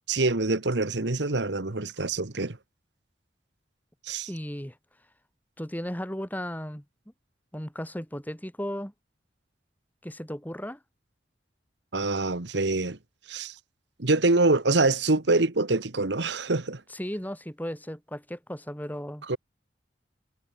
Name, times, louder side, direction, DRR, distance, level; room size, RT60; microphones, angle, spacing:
voice 1, 0.1-2.6 4.1-4.3 11.9-13.0 13.3-13.5 14.0-16.8 19.3-19.4, right 2 dB, 80° right, 1.5 m, -25 dB
voice 2, 4.3-4.8 5.6-6.8 7.5-8.9 10.0-10.8 16.9-19.3, equal, 10° left, 5.5 m, -35 dB
head